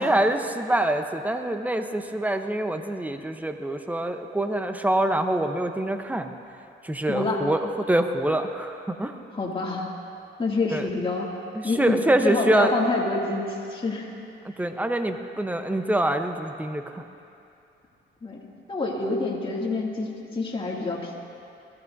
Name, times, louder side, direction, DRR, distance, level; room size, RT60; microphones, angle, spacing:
voice 1, 0.0-6.3 6.8-9.2 10.7-10.9 11.5-12.7 14.6-17.1, right 1 dB, 10° right, 6 dB, 0.8 m, -25 dB
voice 2, 7.1-7.4 9.3-9.9 10.4-11.3 11.6-14.1 18.2-18.4 18.7-21.2, left 3 dB, 25° left, -3 dB, 2.5 m, -27 dB
21.0 x 15.0 x 2.7 m, 2.7 s
cardioid pair, 90°, 20 cm